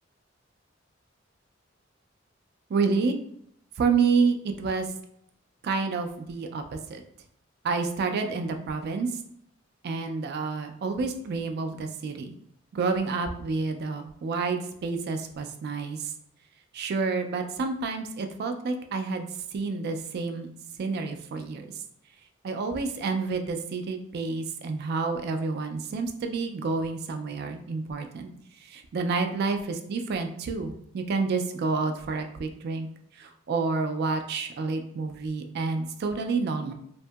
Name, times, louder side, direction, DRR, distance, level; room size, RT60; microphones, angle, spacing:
voice 1, 2.7-3.2 3.8-4.9 5.6-7.0 7.6-9.1 9.8-12.3 12.7-16.1 16.7-19.3 19.5-20.5 20.8-21.6 22.4-28.3 28.7-32.9 33.2-36.7, right 4 dB, 55° right, 6 dB, 0.3 m, -29 dB
2.6 x 2.6 x 2.3 m, 0.70 s
head